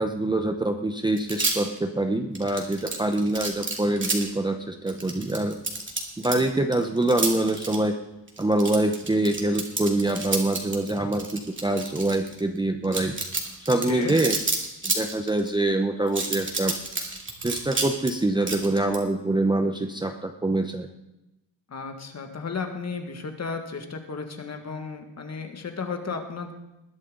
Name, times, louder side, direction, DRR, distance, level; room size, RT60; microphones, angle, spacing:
voice 1, 0.0-5.6 6.2-8.0 8.4-13.2 13.6-14.3 14.8-16.7 17.4-20.9, right 2 dB, 10° right, 4 dB, 0.7 m, -25 dB
sound 1, 1.2-1.8 2.4-4.2 4.9-6.4 6.7-7.8 8.3-12.4 12.8-15.5 16.1-18.1 18.4-19.0, right 3 dB, 25° right, 2.5 m, -29 dB
voice 2, 13.7-14.2 21.7-26.5, left 5 dB, 35° left, 5 dB, 1.8 m, -34 dB
20.5 x 10.5 x 3.8 m, 0.93 s
cardioid pair, 135°, 43 cm